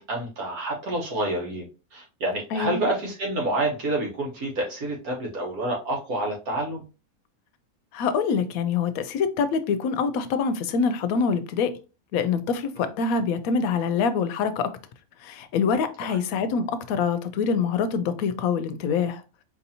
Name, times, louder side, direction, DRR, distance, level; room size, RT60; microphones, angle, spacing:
voice 1, 0.0-6.8 12.8-12.9 16.0-16.2, right 1 dB, 90° right, -2 dB, 1.8 m, -28 dB
voice 2, 2.5-2.8 7.9-11.7 12.1-14.7 15.2-19.2, left 5 dB, 75° left, 11 dB, 1.0 m, -25 dB
4.4 x 2.7 x 2.8 m, 0.32 s
omnidirectional pair, 1.5 m